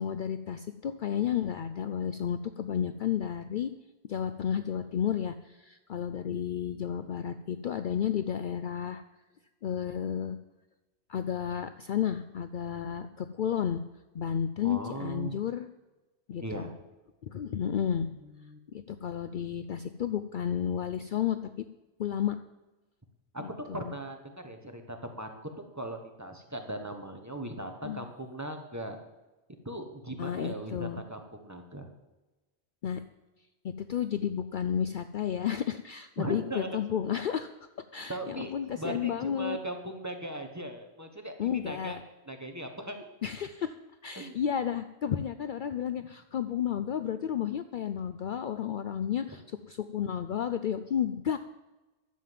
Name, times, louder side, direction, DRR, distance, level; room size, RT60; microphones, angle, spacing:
voice 1, 0.0-3.7 4.1-9.0 9.6-10.4 11.1-13.8 14.1-15.7 16.3-16.7 17.2-18.1 18.7-21.6 22.0-22.4 23.4-24.0 27.8-28.0 30.2-31.0 32.8-33.0 33.6-37.5 37.9-39.6 41.4-42.0 43.2-43.8 44.0-51.4, left 9 dB, 60° left, 10 dB, 0.6 m, -32 dB
voice 2, 14.6-15.3 16.4-16.7 18.4-18.6 23.3-29.0 29.6-31.9 36.2-36.7 38.1-42.0 42.3-43.0 44.2-44.4 46.0-46.1, right 1 dB, 15° right, 4 dB, 1.3 m, -39 dB
11.5 x 7.5 x 7.5 m, 1.1 s
omnidirectional pair, 1.1 m